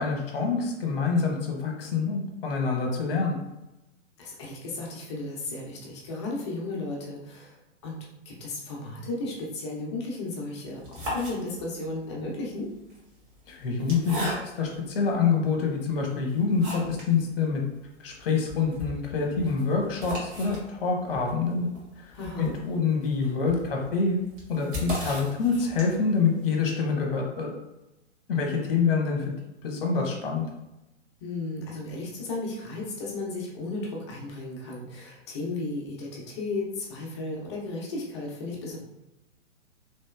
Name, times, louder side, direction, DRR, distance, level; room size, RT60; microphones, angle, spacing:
voice 1, 0.0-3.4 13.5-17.6 18.0-21.7 22.0-24.2 24.5-27.5 28.3-29.3 29.6-30.4, left 5 dB, 50° left, 1 dB, 0.9 m, -26 dB
voice 2, 4.2-7.6 7.8-8.0 8.3-12.7 22.1-22.5 31.2-38.8, left 2 dB, 25° left, -3 dB, 0.5 m, -34 dB
sound 1, 10.7-11.9 12.8-14.8 15.4-15.5 16.0-17.2 17.5-17.6 17.8-17.9 18.3-26.2, equal, 40° right, 1.4 m, -37 dB
3.2 x 2.7 x 2.3 m, 0.94 s
figure-of-eight pair, 120°, 38 cm